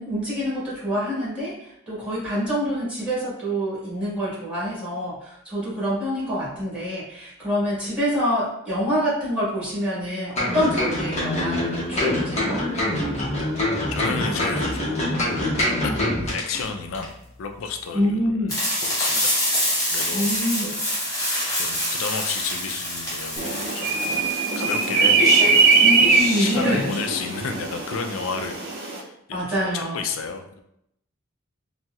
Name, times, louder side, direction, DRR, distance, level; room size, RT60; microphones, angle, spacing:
voice 1, 0.0-12.6 17.9-18.5 20.1-20.7 25.8-27.2 29.3-30.0, equal, 5° right, -9 dB, 1.5 m, -26 dB
sound 1, 10.4-16.6 16.9-17.1, left 1 dB, 35° left, 0.7 m, -25 dB
voice 2, 13.9-15.2 15.8-17.1 17.4-18.5 18.8-19.3 19.7-20.3 20.7-21.1 21.6-25.7 26.4-28.6 28.9-30.6, left 5 dB, 85° left, 5 dB, 0.4 m, -32 dB
sound 2, 18.5-27.0, left 1 dB, 20° left, 1.1 m, -26 dB
sound 3, 23.4-29.0, right 4 dB, 50° right, 0.5 m, -21 dB
4.1 x 2.0 x 2.3 m, 0.77 s
head